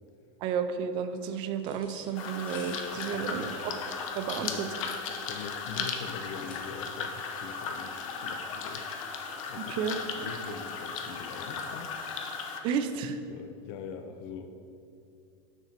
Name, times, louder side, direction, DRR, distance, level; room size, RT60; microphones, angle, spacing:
voice 1, 0.4-3.7 4.2-4.7 9.7-10.0 12.6-13.2, right 7 dB, 30° right, 9 dB, 0.4 m, -32 dB
sound 1, 1.6-7.0, left 3 dB, 30° left, 1.2 m, -52 dB
sound 2, 2.1-12.6, left 5 dB, 90° left, 0.8 m, -36 dB
voice 2, 2.9-3.6 4.4-4.7 5.2-8.9 9.5-9.9 10.1-11.9 13.3-14.5, left 6 dB, 50° left, 6 dB, 0.5 m, -43 dB
6.6 x 6.1 x 4.3 m, 2.6 s
supercardioid pair, 175°, 16 cm